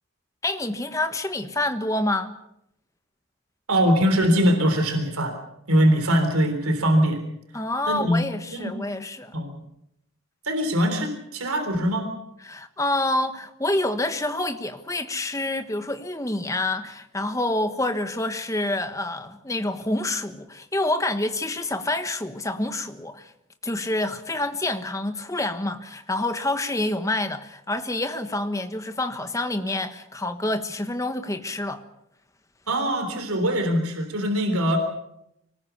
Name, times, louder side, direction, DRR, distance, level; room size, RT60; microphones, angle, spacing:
voice 1, 0.4-2.3 7.5-9.3 12.5-23.3 23.6-31.8, left 2 dB, 15° left, 1.3 m, -27 dB
voice 2, 3.7-5.4 5.7-7.2 7.9-8.2 8.5-8.7 9.3-9.6 10.4-12.1 32.7-34.8, equal, 85° right, 3.6 m, -22 dB
24.5 x 19.0 x 7.1 m
head